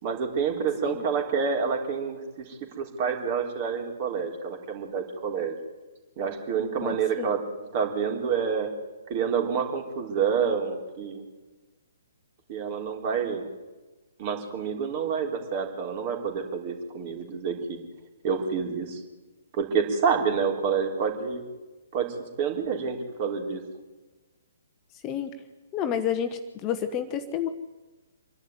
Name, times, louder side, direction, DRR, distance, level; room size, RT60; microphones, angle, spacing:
voice 1, 0.0-5.5 6.2-8.7 9.1-11.2 12.5-13.5 14.2-17.8 18.2-19.0 19.5-21.4 21.9-23.6, right 6 dB, 35° right, 3 dB, 3.8 m, -28 dB
voice 2, 6.8-7.3 25.0-25.3 25.7-27.5, left 9 dB, 25° left, 9 dB, 1.2 m, -30 dB
26.5 x 11.5 x 9.5 m, 1.2 s
figure-of-eight pair, 125°, 0 cm